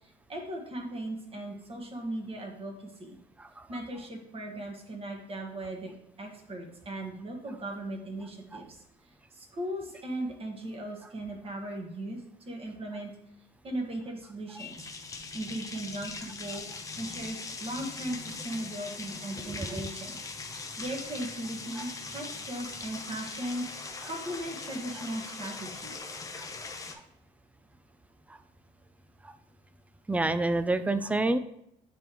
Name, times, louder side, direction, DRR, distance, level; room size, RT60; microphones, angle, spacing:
voice 1, 0.0-3.2 3.7-8.8 9.3-12.2 12.4-13.1 13.6-14.7 15.3-16.7 17.0-20.2 20.8-25.9, right 1 dB, 35° right, 1 dB, 1.5 m, -38 dB
sound 1, 14.6-26.9, left 4 dB, 20° left, 0.7 m, -41 dB
voice 2, 19.5-19.8 21.8-21.9 26.3-26.5 26.9-27.0 28.3-28.4 29.2-29.3 30.1-31.4, right 2 dB, 10° right, 11 dB, 0.4 m, -29 dB
9.2 x 3.4 x 3.0 m, 0.77 s
cardioid pair, 110°, 17 cm